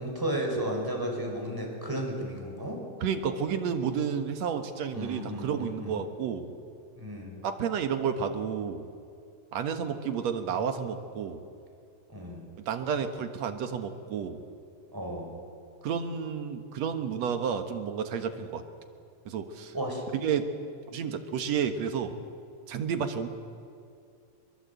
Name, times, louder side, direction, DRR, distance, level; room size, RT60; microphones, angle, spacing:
voice 1, 0.0-2.8 4.9-6.0 7.0-7.3 12.1-12.4 14.9-15.3 19.7-20.0, right 1 dB, 5° right, 1 dB, 4.7 m, -33 dB
voice 2, 3.0-6.5 7.4-8.9 9.5-11.4 12.6-14.4 15.8-18.6 19.3-19.7 20.2-20.5 20.9-22.2 22.7-23.3, right 7 dB, 60° right, 7 dB, 2.3 m, -31 dB
23.0 x 22.5 x 8.2 m, 2.4 s
omnidirectional pair, 3.8 m